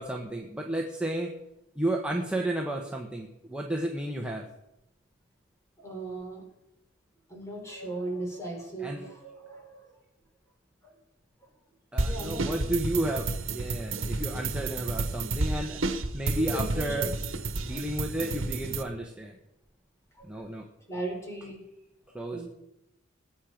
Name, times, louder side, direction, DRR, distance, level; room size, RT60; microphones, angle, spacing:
voice 1, 0.0-1.3 1.7-4.4 8.8-9.1 11.9-15.8 16.1-17.1 17.6-19.4 20.2-20.6 22.1-22.5, right 1 dB, 5° right, 0 dB, 1.3 m, -32 dB
voice 2, 5.8-6.4 7.3-9.9 12.0-12.5 16.5-17.1 17.7-17.8 20.2-20.5 20.9-21.6 22.3-22.5, right 2 dB, 15° left, 1 dB, 4.1 m, -37 dB
sound 1, 12.0-18.8, right 3 dB, 80° right, 1.2 m, -31 dB
20.5 x 8.9 x 5.1 m, 0.87 s
head